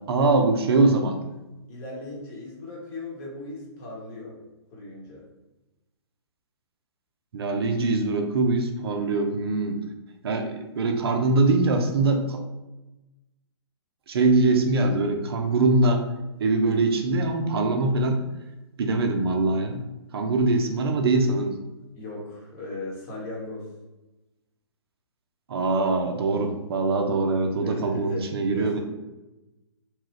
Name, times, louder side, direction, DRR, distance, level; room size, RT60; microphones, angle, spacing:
voice 1, 0.1-1.2 7.3-9.8 10.2-12.4 14.1-16.1 16.4-18.2 18.8-19.8 20.1-21.5 25.5-28.8, right 3 dB, 60° right, 5 dB, 0.5 m, -23 dB
voice 2, 1.7-4.3 4.7-5.2 21.9-23.7 27.6-28.8, left 2 dB, 30° left, -4 dB, 1.1 m, -37 dB
3.0 x 2.3 x 3.2 m, 1.0 s
figure-of-eight pair, 125°, 15 cm